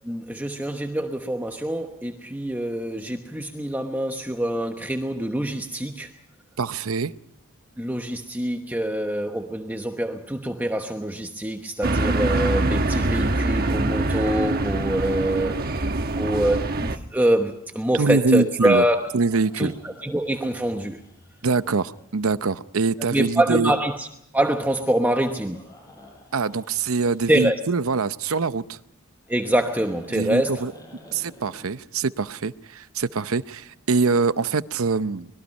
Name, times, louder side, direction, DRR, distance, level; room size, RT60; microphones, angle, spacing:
voice 1, 0.0-6.1 7.8-19.1 19.6-21.0 23.1-24.1 24.3-25.6 27.3-27.6 29.3-30.6, right 1 dB, 10° right, 1.1 m, -25 dB
voice 2, 6.6-7.1 17.9-18.8 19.1-19.7 21.4-23.7 26.3-28.8 30.1-30.7 31.1-35.3, right 4 dB, 80° right, 0.7 m, -24 dB
sound 1, 11.8-17.0, right 2 dB, 45° right, 1.1 m, -24 dB
sound 2, 18.5-22.0 25.5-27.7 29.2-32.3, left 1 dB, 15° left, 6.9 m, -50 dB
24.5 x 21.5 x 5.4 m
head